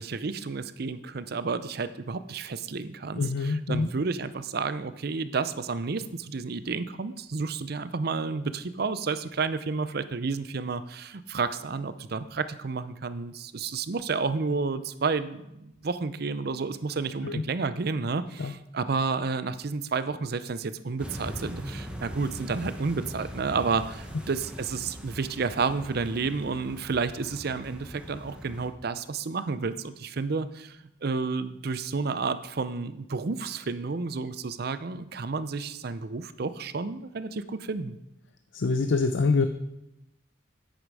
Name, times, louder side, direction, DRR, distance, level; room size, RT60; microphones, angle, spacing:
voice 1, 0.0-3.2 3.7-38.0, right 4 dB, 55° right, 13 dB, 0.6 m, -31 dB
voice 2, 3.1-3.9 17.2-17.4 18.4-18.5 38.5-39.5, left 4 dB, 80° left, 9 dB, 0.6 m, -25 dB
sound 1, 21.0-28.7, equal, 5° right, 1.2 m, -41 dB
10.0 x 9.1 x 4.8 m, 0.86 s
head